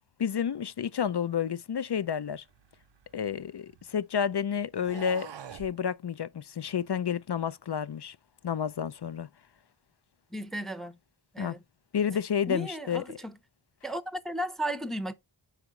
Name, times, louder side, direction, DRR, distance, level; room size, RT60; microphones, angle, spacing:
voice 1, 0.2-2.4 3.1-8.2 8.4-9.3 11.4-11.5 11.9-13.2, left 8 dB, 60° left, 0.5 m, -30 dB
sound 1, 2.5-4.0 4.7-5.8, right 8 dB, 65° right, 0.6 m, -45 dB
voice 2, 10.3-11.0 11.3-11.6 12.1-12.2 12.5-13.3 13.8-15.1, right 1 dB, ahead, 0.6 m, -35 dB
5.9 x 5.0 x 4.2 m
wide cardioid pair, 45°, 46 cm